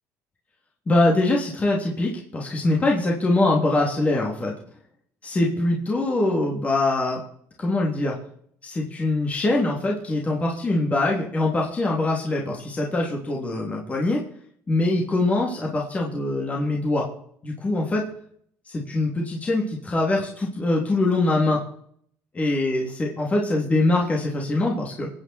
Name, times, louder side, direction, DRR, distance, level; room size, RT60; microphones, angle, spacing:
voice 1, 0.9-4.5 5.2-7.2 7.6-8.1 8.6-14.2 14.7-17.0 17.4-18.0 18.7-21.6 22.4-25.1, left 2 dB, 25° left, -2 dB, 3.3 m, -23 dB
24.5 x 9.3 x 4.6 m, 0.65 s
supercardioid pair, 100°, 6 cm